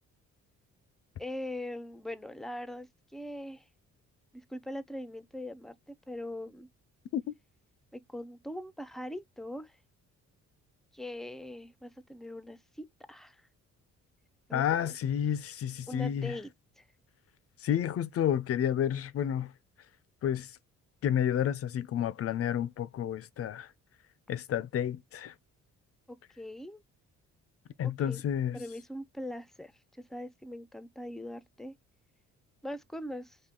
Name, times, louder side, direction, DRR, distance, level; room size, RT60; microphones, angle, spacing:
voice 1, 1.2-3.7 4.3-6.7 7.9-9.8 10.9-13.4 14.5-14.9 15.9-16.5 16.8-16.9 26.1-26.8 27.8-28.2 28.5-29.7 30.1-31.7 32.6-33.4, left 1 dB, ahead, 0.5 m, -41 dB
voice 2, 14.5-16.4 17.6-19.5 20.2-20.6 21.0-23.7 24.3-25.3 27.8-28.6, left 9 dB, 50° left, 0.5 m, -30 dB
4.1 x 2.8 x 3.7 m
cardioid pair, 90°, 30 cm